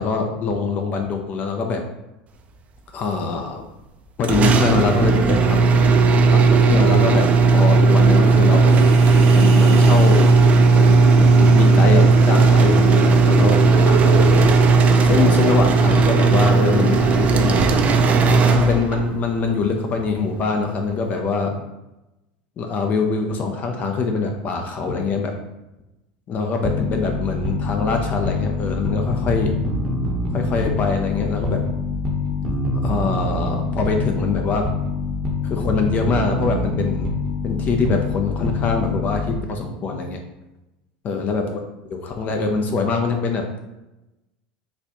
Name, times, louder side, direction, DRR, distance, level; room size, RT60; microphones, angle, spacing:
voice 1, 0.0-1.8 2.9-3.6 4.2-5.6 6.3-8.8 9.3-10.2 10.7-14.5 15.0-17.6 18.6-21.6 22.6-25.3 26.3-29.5 30.3-31.6 32.8-34.6 35.4-37.1 37.4-40.2 41.0-41.6 41.9-43.6, left 4 dB, 40° left, 3 dB, 0.5 m, -23 dB
sound 1, 4.2-19.2, right 3 dB, 35° right, 0.4 m, -15 dB
Human voice, 8.7-18.1, right 4 dB, 70° right, 0.9 m, -32 dB
sound 2, 26.6-39.6, left 3 dB, 10° right, 0.7 m, -25 dB
4.0 x 2.3 x 2.9 m, 0.98 s
hypercardioid pair, 95°, 4 cm